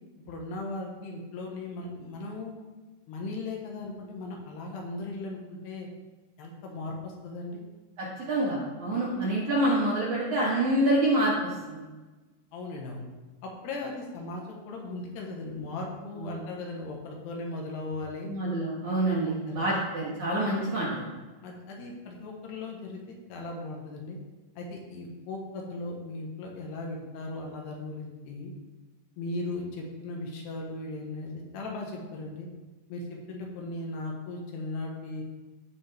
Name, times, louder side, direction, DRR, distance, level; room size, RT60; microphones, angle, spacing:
voice 1, 0.3-2.6 3.1-5.9 6.4-7.6 12.5-13.1 13.4-18.3 19.1-19.7 21.4-24.2 24.6-28.5 29.2-32.5 32.9-35.2, left 2 dB, 70° left, -1 dB, 3.1 m, -37 dB
voice 2, 8.0-11.3 11.7-11.8 16.2-16.4 18.3-21.0, right 1 dB, 60° right, -5 dB, 2.2 m, -27 dB
15.5 x 5.2 x 3.5 m, 1.2 s
omnidirectional pair, 5.2 m